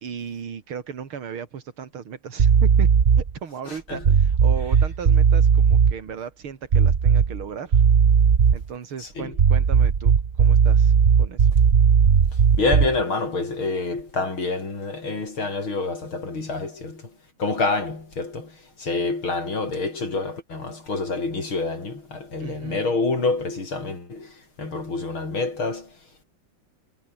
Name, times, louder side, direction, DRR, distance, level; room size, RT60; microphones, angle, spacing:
voice 1, 0.0-2.9 3.2-7.9 8.5-11.5 22.4-22.8, right 7 dB, 85° right, 3.1 m, -36 dB
sound 1, 2.4-3.4 4.0-5.9 6.7-7.4 7.7-8.7 9.3-13.0, right 6 dB, 35° right, 1.2 m, -17 dB
voice 2, 3.7-4.0 9.0-9.3 12.3-26.0, left 3 dB, 75° left, 6.4 m, -27 dB
omnidirectional pair, 2.3 m